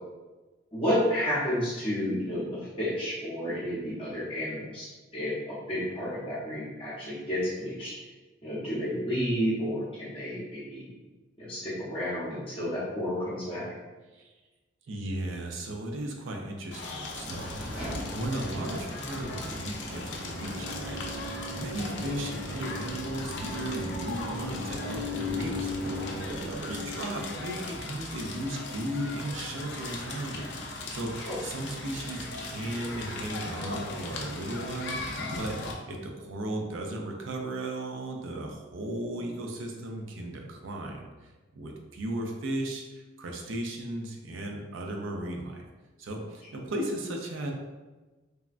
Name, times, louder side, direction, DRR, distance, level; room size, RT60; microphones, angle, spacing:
voice 1, 0.7-7.9 8.4-10.9 11.4-13.7 31.2-31.4, equal, 30° left, -9 dB, 0.7 m, -31 dB
voice 2, 14.9-17.8 18.1-21.0 21.5-45.7 46.0-47.5, right 1 dB, 80° right, 2 dB, 0.5 m, -36 dB
Crackle, 16.7-35.7, left 2 dB, 60° left, 0.4 m, -38 dB
sound 1, 17.0-27.3, left 1 dB, 10° right, 0.9 m, -38 dB
3.4 x 2.1 x 2.4 m, 1.2 s
head